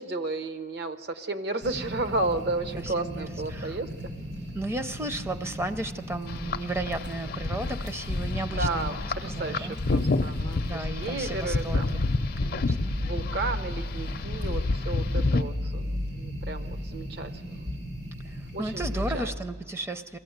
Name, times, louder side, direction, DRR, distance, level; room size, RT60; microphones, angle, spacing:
voice 1, 0.0-3.9 8.6-12.0 13.0-17.7 18.5-19.3, right 2 dB, 65° right, 10 dB, 0.8 m, -33 dB
sound 1, 1.6-19.2, left 1 dB, 85° right, 5.2 m, -36 dB
voice 2, 2.8-3.8 4.5-9.8 10.6-12.1 12.4-12.9 18.3-20.2, right 2 dB, 15° right, 9 dB, 0.5 m, -34 dB
sound 2, 6.3-15.4, left 3 dB, 55° left, 0.5 m, -29 dB
22.5 x 15.0 x 8.0 m, 2.2 s
head